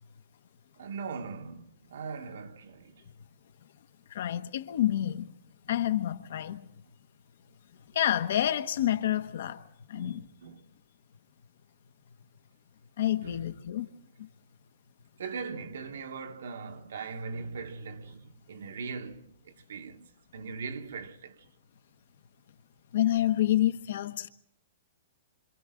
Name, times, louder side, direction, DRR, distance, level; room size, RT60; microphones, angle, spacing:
voice 1, 0.8-3.1 9.9-10.6 13.2-13.5 15.2-21.5, right 5 dB, 70° right, 1.4 m, -40 dB
voice 2, 4.1-5.3 5.7-6.7 7.9-9.6 9.9-10.3 13.0-13.9 22.9-24.3, left 12 dB, 50° left, 1.1 m, -28 dB
28.5 x 26.5 x 3.8 m
hypercardioid pair, 180°, 0 cm